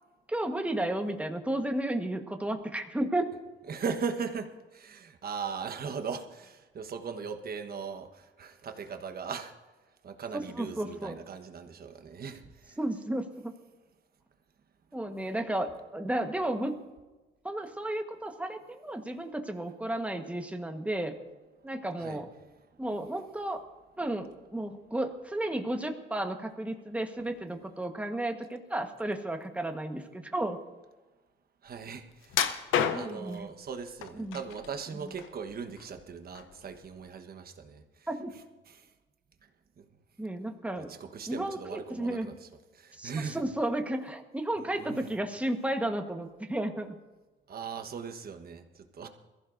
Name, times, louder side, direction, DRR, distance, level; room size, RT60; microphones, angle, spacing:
voice 1, 0.3-3.3 10.3-11.2 12.8-13.5 14.9-16.7 17.4-21.1 21.6-22.3 22.8-23.6 24.0-30.6 32.9-33.5 34.2-34.4 38.1-38.3 40.2-40.9 41.3-42.3 43.0-47.0, right 1 dB, 5° right, 5 dB, 1.3 m, -33 dB
voice 2, 3.7-9.5 10.0-12.8 22.0-22.2 31.6-32.0 32.4-32.5 32.9-37.8 38.7-38.8 40.8-42.3 42.7-43.4 44.6-45.1 47.5-49.1, right 6 dB, 50° right, 7 dB, 1.3 m, -39 dB
sound 1, 32.3-33.3 34.0-34.7 35.1-36.0 36.4-36.5 37.1-37.2, left 8 dB, 90° left, 0.9 m, -30 dB
22.0 x 15.0 x 2.7 m, 1.2 s
cardioid pair, 90°, 20 cm